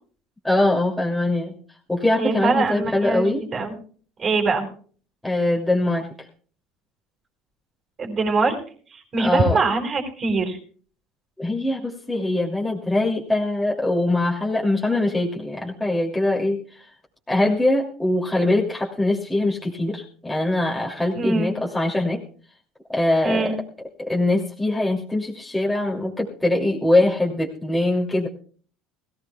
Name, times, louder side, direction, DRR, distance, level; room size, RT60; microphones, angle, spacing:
voice 1, 0.4-1.5 1.9-3.4 5.2-6.1 9.2-9.6 11.4-16.8 17.3-22.2 22.9-23.6 24.0-28.3, left 2 dB, 5° left, -3 dB, 2.6 m, -22 dB
voice 2, 2.2-3.8 4.2-4.7 8.0-8.6 8.9-10.6 21.1-21.5 23.2-23.5, right 3 dB, 30° right, -1 dB, 4.2 m, -23 dB
21.5 x 16.0 x 2.3 m, 0.43 s
cardioid pair, 125°, 0 cm